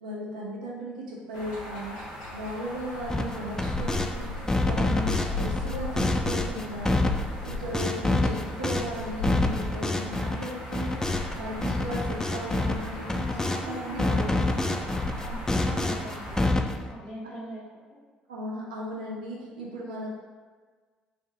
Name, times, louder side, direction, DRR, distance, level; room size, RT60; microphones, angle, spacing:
voice 1, 0.0-2.0 2.3-7.1 7.4-11.0 11.3-13.2 13.6-14.3 14.6-14.8 18.3-20.1, equal, 85° right, -5 dB, 0.7 m, -36 dB
sound 1, 1.3-16.5, left 2 dB, 75° left, 0.7 m, -37 dB
sound 2, 3.1-4.1 4.5-13.7 14.0-16.9, left 2 dB, 15° left, 0.3 m, -27 dB
voice 2, 11.5-11.8 13.2-14.9 15.2-16.5 16.9-17.8, equal, 45° left, -6 dB, 1.5 m, -41 dB
3.4 x 2.6 x 3.7 m, 1.5 s
hypercardioid pair, 50°, 4 cm